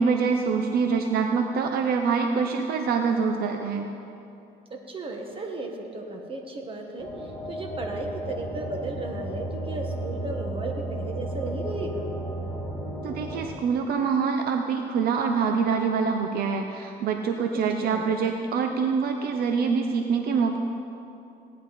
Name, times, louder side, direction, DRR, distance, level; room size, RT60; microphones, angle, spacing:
voice 1, 0.0-3.9 13.0-20.6, right 5 dB, 65° right, 5 dB, 0.8 m, -25 dB
voice 2, 4.7-12.1 17.8-18.1, right 2 dB, 30° right, 3 dB, 1.7 m, -35 dB
sound 1, 7.0-13.5, right 1 dB, ahead, 2.6 m, -33 dB
17.5 x 10.0 x 4.4 m, 2.8 s
cardioid pair, 110°, 17 cm